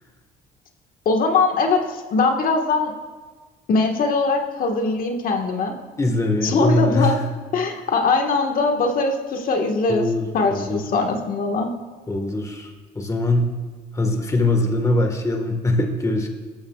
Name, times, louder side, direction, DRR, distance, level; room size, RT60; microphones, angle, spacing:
voice 1, 1.0-2.9 3.7-5.7 6.4-7.2 7.5-10.1 10.3-11.7, left 3 dB, 55° left, 3 dB, 1.6 m, -21 dB
voice 2, 6.0-7.2 9.9-10.8 12.1-12.7 12.9-13.5 13.9-16.3, left 2 dB, 20° left, 4 dB, 1.5 m, -22 dB
17.5 x 13.5 x 2.4 m, 1.4 s
cardioid pair, 110°, 17 cm